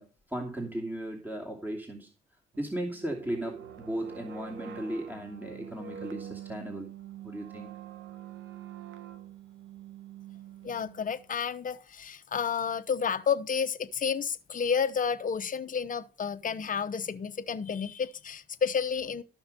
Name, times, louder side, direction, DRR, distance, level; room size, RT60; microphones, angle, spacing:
voice 1, 0.0-2.1 2.6-6.9 7.2-7.7, right 1 dB, 10° right, 2.7 m, -36 dB
sound 1, 2.5-11.3, right 9 dB, 80° right, 1.4 m, -45 dB
voice 2, 10.6-19.2, left 6 dB, 40° left, 1.0 m, -31 dB
13.5 x 6.0 x 5.3 m
cardioid pair, 90°, 20 cm